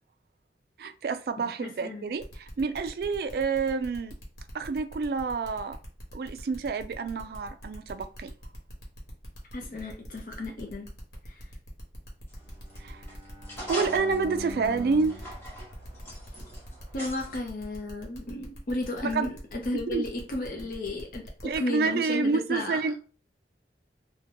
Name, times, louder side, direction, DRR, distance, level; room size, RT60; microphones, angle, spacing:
voice 1, 0.8-4.2 4.5-5.8 6.1-8.3 12.8-13.0 13.7-15.2 19.1-19.3 19.9-20.0 21.4-23.0, right 4 dB, 60° right, 0.3 m, -28 dB
voice 2, 1.6-2.1 9.5-10.9 11.3-11.5 16.9-22.8, left 2 dB, 50° left, 0.5 m, -34 dB
sound 1, 2.2-21.6, equal, 70° left, 1.2 m, -47 dB
sound 2, 12.3-17.4, right 1 dB, 15° left, 1.1 m, -41 dB
Bowed string instrument, 12.4-16.6, left 2 dB, 15° right, 0.8 m, -45 dB
3.6 x 2.2 x 2.9 m
head